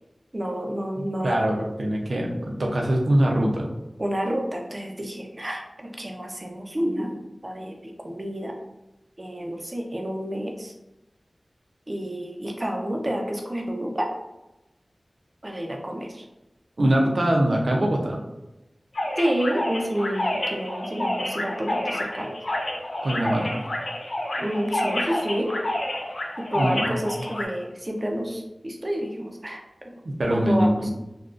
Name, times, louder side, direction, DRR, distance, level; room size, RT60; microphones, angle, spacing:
voice 1, 0.3-1.4 4.0-8.6 9.2-10.7 11.9-14.1 15.4-16.2 19.2-22.4 24.4-25.5 26.4-30.0 30.3-30.9, equal, 35° right, 1 dB, 0.6 m, -29 dB
voice 2, 1.2-3.7 16.8-18.2 23.0-23.5 26.6-26.9 30.0-30.9, right 1 dB, 75° right, 0 dB, 0.6 m, -23 dB
sound 1, 18.9-27.4, left 1 dB, 70° left, 0.5 m, -29 dB
3.7 x 2.3 x 2.5 m, 0.95 s
wide cardioid pair, 50°, 0 cm